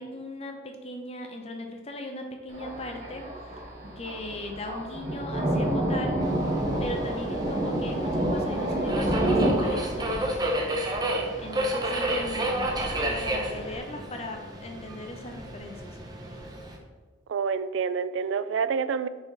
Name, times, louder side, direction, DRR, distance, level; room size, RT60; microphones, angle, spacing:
voice 1, 0.0-3.2 4.0-6.2 6.8-10.7 11.4-16.0, left 1 dB, 30° left, 4 dB, 0.7 m, -38 dB
Thunder, 2.5-13.8, right 1 dB, 40° right, 1.4 m, -30 dB
Subway metro underground, 6.2-16.8, right 1 dB, 20° right, 0.6 m, -32 dB
voice 2, 17.3-19.1, right 6 dB, 70° right, 13 dB, 0.3 m, -27 dB
6.0 x 4.2 x 3.9 m, 1.4 s
head